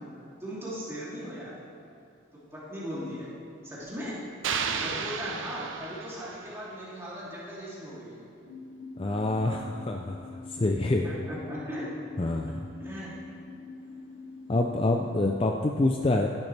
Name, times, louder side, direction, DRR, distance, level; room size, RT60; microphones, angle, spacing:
voice 1, 0.4-1.6 2.5-3.3 3.6-4.2 4.7-8.2 11.0-11.8 12.8-13.1, equal, 15° right, -9 dB, 2.9 m, -38 dB
sound 1, 4.4-6.6, right 6 dB, 75° right, 0.6 m, -33 dB
sound 2, 8.5-15.3, left 3 dB, 65° left, 0.7 m, -45 dB
voice 2, 9.0-11.1 12.2-12.7 14.5-16.3, left 2 dB, 25° left, 2 dB, 0.4 m, -27 dB
15.5 x 10.5 x 3.4 m, 2.6 s
head